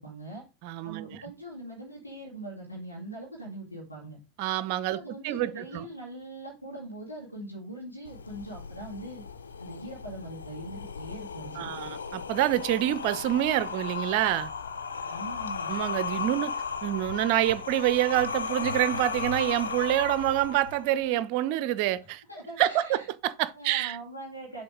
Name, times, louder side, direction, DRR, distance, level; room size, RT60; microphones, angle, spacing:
voice 1, 0.0-0.4 0.8-4.2 4.9-9.2 9.6-11.7 15.0-15.7 22.3-23.1 23.5-24.6, right 1 dB, 85° left, 2.0 m, -41 dB
voice 2, 0.6-1.1 4.4-5.8 11.6-14.5 15.7-16.5 16.8-22.2 22.6-24.0, right 14 dB, 45° right, 0.5 m, -27 dB
sound 1, 8.0-21.0, left 5 dB, 70° left, 0.6 m, -36 dB
6.9 x 3.3 x 5.0 m
figure-of-eight pair, 90°, 0 cm